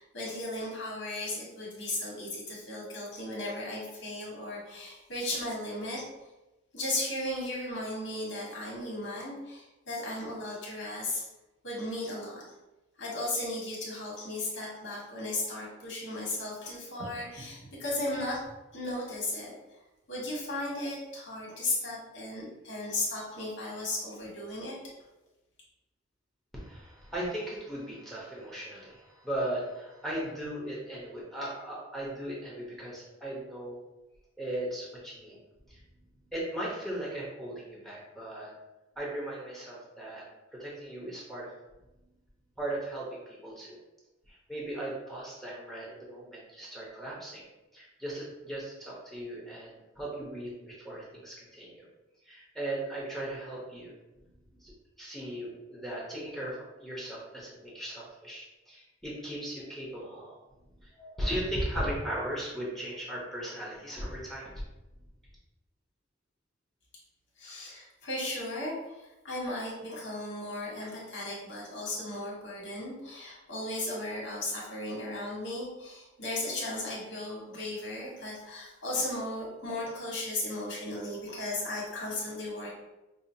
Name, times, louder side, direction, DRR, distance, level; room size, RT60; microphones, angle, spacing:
voice 1, 0.0-6.1 6.7-11.2 11.6-12.5 13.0-18.4 18.7-19.5 20.1-24.8 67.4-82.7, left 1 dB, 75° left, -5 dB, 1.4 m, -36 dB
voice 2, 26.5-33.8 34.4-35.4 35.7-35.8 36.3-38.5 39.0-40.2 40.5-41.5 42.6-43.8 44.3-47.5 47.7-51.9 52.3-53.9 54.6-54.7 55.0-60.4 60.8-64.5, right 1 dB, ahead, -5 dB, 0.8 m, -37 dB
5.5 x 2.0 x 2.7 m, 1.0 s
head